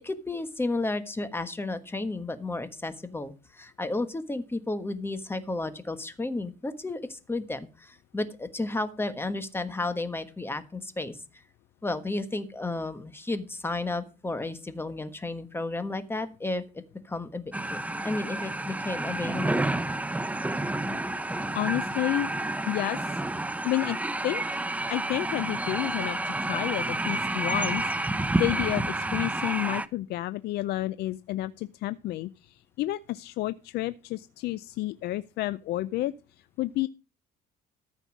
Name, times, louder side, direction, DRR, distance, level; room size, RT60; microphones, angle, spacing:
voice 1, 0.0-11.2 11.8-17.8 18.0-19.6, left 2 dB, 15° left, 10 dB, 1.3 m, -33 dB
sound 1, 17.5-29.9, right 2 dB, 10° right, 0.6 m, -30 dB
voice 2, 21.2-22.3 22.7-23.2 23.6-24.0 24.2-24.6 24.9-36.1 36.6-36.9, left 16 dB, 75° left, 16 dB, 0.5 m, -31 dB
14.0 x 5.4 x 6.2 m, 0.32 s
cardioid pair, 110°, 17 cm